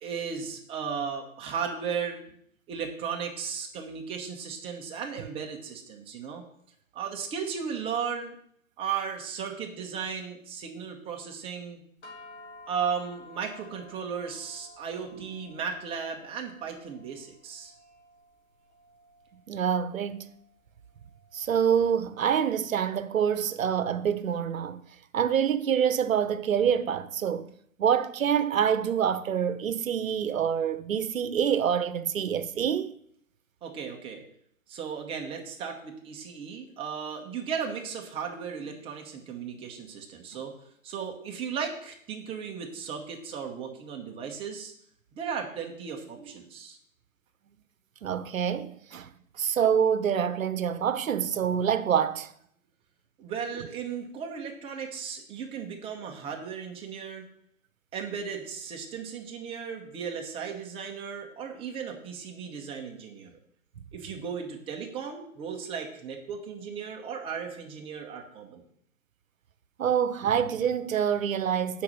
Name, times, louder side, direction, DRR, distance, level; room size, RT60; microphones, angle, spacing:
voice 1, 0.0-2.4 2.7-6.4 6.9-8.3 8.8-11.8 12.7-17.7 33.6-34.2 34.7-40.5 40.8-44.7 45.1-46.8 53.2-57.3 57.9-63.4 63.9-68.6, right 6 dB, 15° right, 1.0 m, -36 dB
sound 1, 12.0-22.5, left 2 dB, 55° left, 2.5 m, -53 dB
voice 2, 19.5-20.3 21.3-24.8 25.1-27.5 27.8-32.9 48.0-49.1 49.4-52.3 69.8-71.8, right 8 dB, 75° right, 0.9 m, -26 dB
8.4 x 5.4 x 6.3 m
hypercardioid pair, 140°, 41 cm